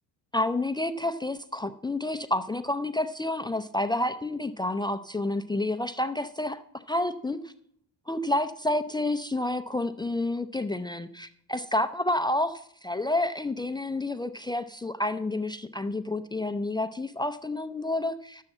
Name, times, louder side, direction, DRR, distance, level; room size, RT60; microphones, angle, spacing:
voice 1, 0.3-6.6 6.9-7.5 8.1-18.4, left 1 dB, 10° left, 7 dB, 0.5 m, -29 dB
12.0 x 7.3 x 7.7 m, 0.66 s
cardioid pair, 120°, 40 cm